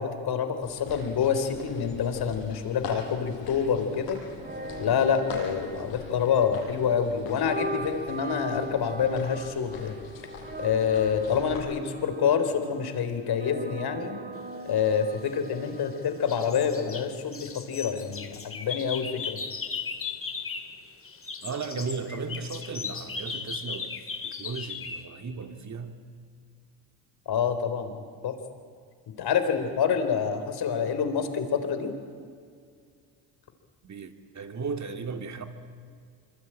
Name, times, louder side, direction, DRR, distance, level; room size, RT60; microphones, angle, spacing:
voice 1, 0.0-4.2 4.8-9.9 10.6-14.2 14.6-19.4 27.3-28.4 29.2-31.9, left 7 dB, 55° left, 3.9 m, -27 dB
sound 1, 0.6-11.6, left 5 dB, 75° left, 7.2 m, -43 dB
sound 2, 4.3-17.2, right 2 dB, 20° right, 2.5 m, -40 dB
sound 3, 15.1-15.9 16.3-20.8 21.0-25.0, left 5 dB, 30° left, 2.3 m, -37 dB
voice 2, 21.4-26.0 33.8-35.5, right 4 dB, 40° right, 2.8 m, -36 dB
24.5 x 24.5 x 9.0 m
supercardioid pair, 75°, 45 cm